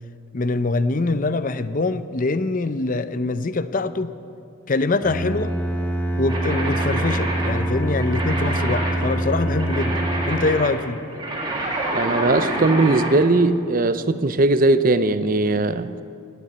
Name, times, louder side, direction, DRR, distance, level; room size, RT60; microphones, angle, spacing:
voice 1, 0.3-4.1 4.7-5.5 6.2-11.0, left 3 dB, 40° left, 13 dB, 0.6 m, -24 dB
Bowed string instrument, 5.0-10.9, right 1 dB, 10° left, 1.6 m, -25 dB
sound 1, 6.3-13.2, right 1 dB, 20° right, 2.3 m, -27 dB
voice 2, 11.9-15.9, right 2 dB, 40° right, 12 dB, 0.6 m, -19 dB
18.0 x 9.3 x 8.6 m, 2.4 s
head